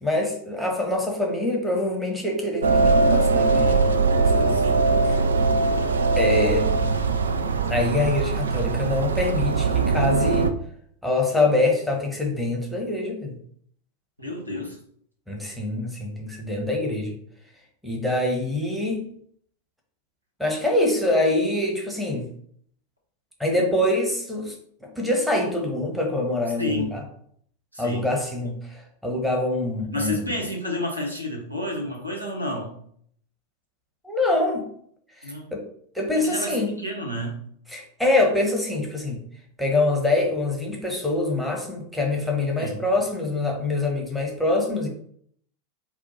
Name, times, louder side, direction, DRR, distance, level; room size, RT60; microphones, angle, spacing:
voice 1, 0.0-4.6 6.2-6.9 7.7-10.5 11.0-13.3 15.3-17.1 17.8-19.1 20.4-22.3 23.4-24.5 24.8-27.0 27.8-30.2 34.0-34.7 35.2-35.6 35.9-36.7 37.7-39.2 39.6-44.9, left 2 dB, ahead, -1 dB, 1.0 m, -25 dB
sound 1, 2.6-10.5, right 3 dB, 70° right, 0.3 m, -21 dB
voice 2, 4.5-4.9 14.2-14.8 26.6-26.9 27.7-28.0 29.9-32.7 35.2-35.4 36.2-36.5 36.8-37.4 42.6-42.8, left 1 dB, 85° right, -2 dB, 1.2 m, -30 dB
4.5 x 2.4 x 4.0 m, 0.64 s
figure-of-eight pair, 90°, 0 cm